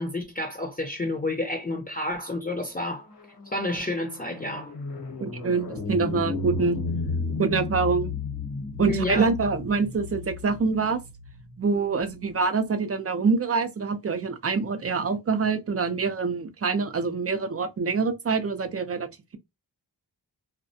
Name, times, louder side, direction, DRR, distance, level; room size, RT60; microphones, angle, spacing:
voice 1, 0.0-3.1 3.5-4.7 8.8-9.2, left 1 dB, 20° left, 0.6 m, -29 dB
sound 1, 2.8-12.3, left 4 dB, 75° left, 0.9 m, -34 dB
voice 2, 5.2-6.8 7.4-8.1 8.8-11.0 11.6-19.4, right 4 dB, 35° right, 0.5 m, -25 dB
2.3 x 2.1 x 2.6 m
cardioid pair, 55°, 41 cm